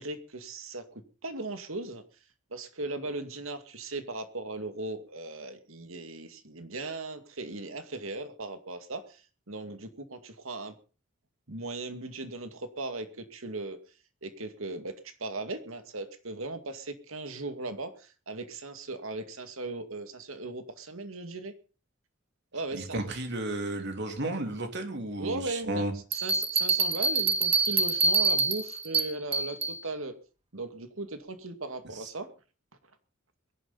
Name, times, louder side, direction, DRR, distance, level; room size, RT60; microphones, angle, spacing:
voice 1, 0.0-2.0 2.5-10.7 11.5-13.8 14.2-21.5 22.5-23.0 25.2-30.2 30.5-32.3, right 2 dB, 90° right, 9 dB, 2.3 m, -38 dB
voice 2, 22.7-25.9, right 1 dB, 60° right, 5 dB, 3.3 m, -33 dB
Bell, 26.1-29.8, right 4 dB, 30° right, 2.0 m, -26 dB
22.5 x 11.0 x 4.1 m, 0.36 s
head